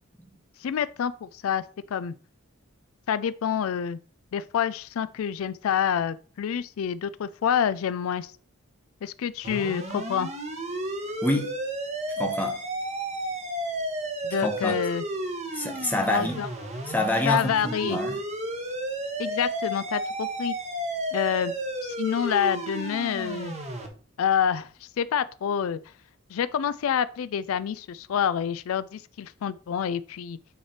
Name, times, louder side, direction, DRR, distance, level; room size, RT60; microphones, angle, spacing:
voice 1, 0.6-1.6 1.9-2.1 3.1-4.0 4.3-8.3 9.0-10.3 14.2-15.0 16.1-16.5 17.3-18.0 19.2-20.5 21.1-21.5 21.8-23.5 24.2-25.8 26.3-30.4, left 8 dB, 85° left, 0.4 m, -27 dB
sound 1, 9.4-23.9, right 1 dB, 30° right, 1.2 m, -32 dB
voice 2, 11.2-11.5 12.2-12.6 14.4-14.8 15.5-16.4 16.9-18.2, left 1 dB, 10° left, 1.1 m, -27 dB
9.2 x 3.3 x 4.3 m
head